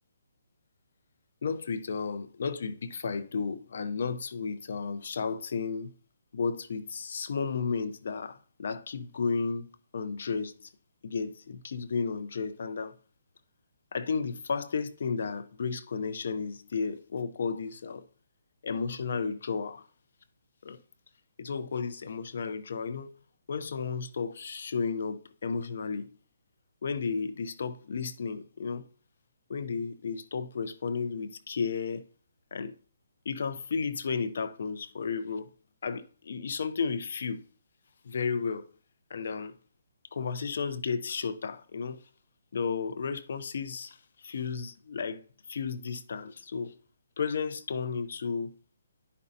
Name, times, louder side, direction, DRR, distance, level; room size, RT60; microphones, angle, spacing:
voice 1, 1.4-5.9 6.3-10.7 11.0-12.9 13.9-18.0 18.6-19.9 20.6-20.8 21.4-23.1 23.5-26.1 26.8-28.9 29.5-32.1 32.5-32.8 33.2-35.5 35.8-37.4 38.0-38.7 39.1-39.5 40.1-42.0 42.5-46.8 47.2-48.5, left 5 dB, 65° left, 0.7 m, -33 dB
9.9 x 5.3 x 2.7 m
hypercardioid pair, 155°, 0 cm